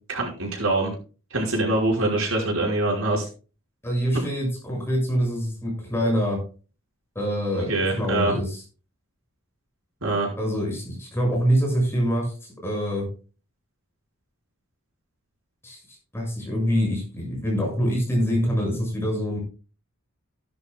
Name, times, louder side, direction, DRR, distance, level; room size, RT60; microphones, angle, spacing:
voice 1, 0.1-0.9 1.3-3.2 7.5-8.3 10.0-10.3, right 2 dB, 85° right, -1 dB, 5.3 m, -24 dB
voice 2, 3.8-6.4 7.1-8.6 10.4-13.1 15.6-15.8 16.1-19.4, equal, 10° left, -1 dB, 6.6 m, -25 dB
16.5 x 11.0 x 2.3 m, 0.35 s
head